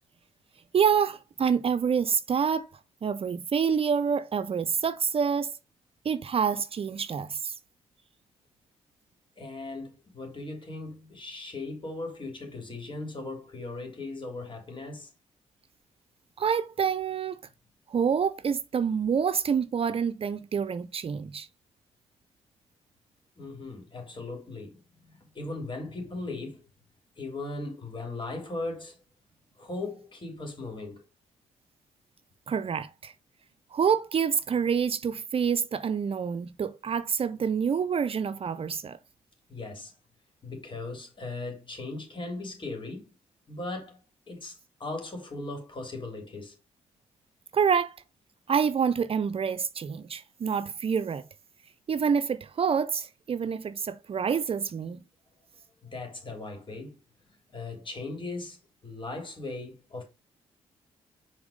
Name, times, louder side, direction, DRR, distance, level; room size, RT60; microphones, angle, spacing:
voice 1, 0.7-2.7 3.0-5.5 6.0-7.5 16.4-17.4 17.9-21.5 32.5-33.1 33.7-39.0 47.5-47.9 48.5-51.2 51.9-55.0, right 7 dB, 45° right, 0.6 m, -27 dB
voice 2, 9.4-15.1 23.4-26.6 27.2-29.0 29.6-31.0 39.5-39.9 40.4-43.1 43.5-44.0 44.3-46.6 55.8-57.0 57.5-58.6 58.8-60.0, left 2 dB, 40° left, 3.4 m, -38 dB
6.1 x 4.0 x 5.1 m
supercardioid pair, 55°, 13 cm